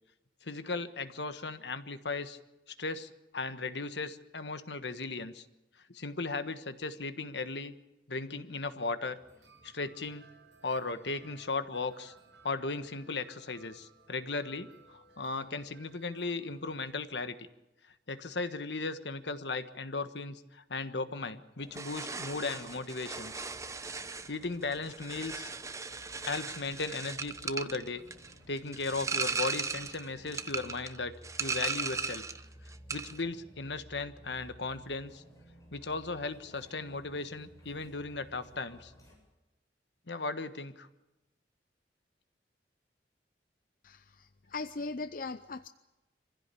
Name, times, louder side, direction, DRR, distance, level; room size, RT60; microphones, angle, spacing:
voice 1, 0.4-2.4 2.8-5.4 5.9-7.7 8.1-9.2 9.6-10.3 10.6-12.1 12.4-17.4 18.1-23.5 23.9-24.0 24.3-25.5 26.3-28.0 28.5-31.1 31.4-32.2 32.9-35.2 35.7-38.9 40.1-40.9, left 3 dB, 75° left, 11 dB, 1.5 m, -36 dB
sound 1, 9.2-17.2, right 4 dB, 85° right, 6.4 m, -61 dB
sound 2, 21.6-39.2, equal, 20° left, 7.9 m, -56 dB
sound 3, 21.7-32.5 32.7-33.2, right 4 dB, 15° right, 0.9 m, -37 dB
voice 2, 43.8-45.7, left 3 dB, 50° left, 11 dB, 0.7 m, -39 dB
25.0 x 16.0 x 8.5 m, 0.99 s
head